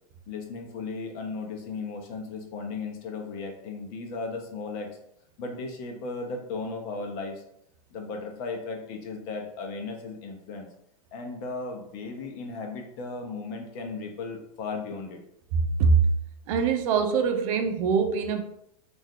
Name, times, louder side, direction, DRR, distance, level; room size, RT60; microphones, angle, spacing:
voice 1, 0.3-4.9 5.4-7.4 7.9-10.7 11.1-15.2, left 4 dB, 45° left, 0.9 m, -36 dB
voice 2, 15.5-16.1 16.5-18.4, right 5 dB, 60° right, 0.7 m, -23 dB
3.8 x 2.6 x 3.2 m
hypercardioid pair, 110°, 20 cm